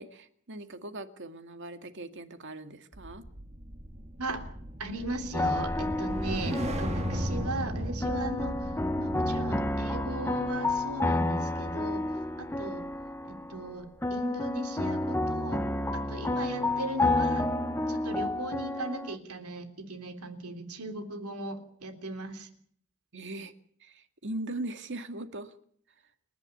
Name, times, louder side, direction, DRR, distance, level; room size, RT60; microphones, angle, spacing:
voice 1, 0.0-3.2 23.1-23.5 23.8-25.5, right 2 dB, 55° right, 8 dB, 2.1 m, -40 dB
sound 1, 2.9-13.3 13.7-14.0, equal, 30° right, 1.8 m, -37 dB
voice 2, 4.8-12.0 12.4-12.8 13.2-15.6 15.9-17.5 17.9-22.5, right 2 dB, 80° right, 7 dB, 3.4 m, -38 dB
sound 2, 5.3-7.7 8.0-13.7 14.0-19.2, left 2 dB, 10° left, 1.0 m, -30 dB
30.0 x 11.0 x 8.5 m, 0.62 s
head